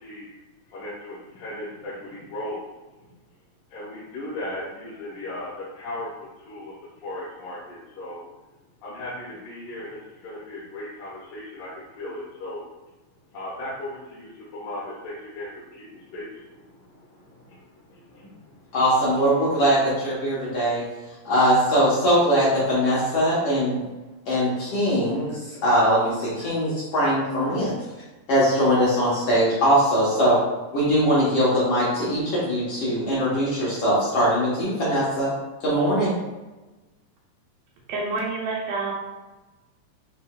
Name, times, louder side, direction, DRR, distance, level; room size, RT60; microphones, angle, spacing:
voice 1, 0.7-2.6 3.7-6.7 7.0-8.2 8.8-12.6 13.3-16.5 16.9-17.6 18.1-18.4, left 1 dB, 75° left, -8 dB, 2.4 m, -37 dB
voice 2, 18.7-20.8 21.2-23.8 24.3-27.7 28.3-30.4 30.7-35.3 35.6-36.2, equal, 60° left, -9 dB, 1.6 m, -21 dB
voice 3, 37.9-38.9, right 3 dB, 85° right, -4 dB, 2.6 m, -28 dB
6.4 x 3.3 x 2.3 m, 1.1 s
omnidirectional pair, 4.0 m